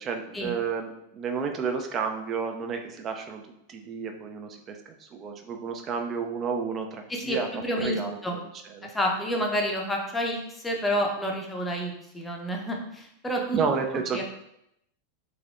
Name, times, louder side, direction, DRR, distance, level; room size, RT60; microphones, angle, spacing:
voice 1, 0.0-3.4 3.7-7.5 7.8-8.4 8.7-8.9 13.5-14.2, right 5 dB, 30° right, 4 dB, 0.5 m, -31 dB
voice 2, 7.1-8.4 8.9-10.4 10.6-13.6 14.1-14.2, equal, 10° left, 0 dB, 0.6 m, -29 dB
3.5 x 3.3 x 2.5 m, 0.79 s
figure-of-eight pair, 90°, 0 cm